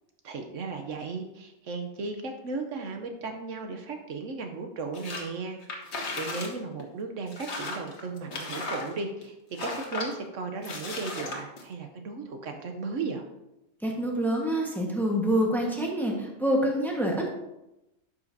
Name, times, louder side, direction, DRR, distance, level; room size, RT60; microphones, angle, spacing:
voice 1, 0.2-13.2, right 4 dB, 70° right, 5 dB, 1.1 m, -36 dB
sound 1, 4.9-5.3 5.6-6.5 6.8-6.9 7.3-9.2 9.6-10.1 10.6-11.6, left 2 dB, 60° left, 1.4 m, -35 dB
voice 2, 13.8-17.3, equal, ahead, -1 dB, 1.2 m, -26 dB
11.5 x 5.5 x 2.7 m, 0.91 s
omnidirectional pair, 1.4 m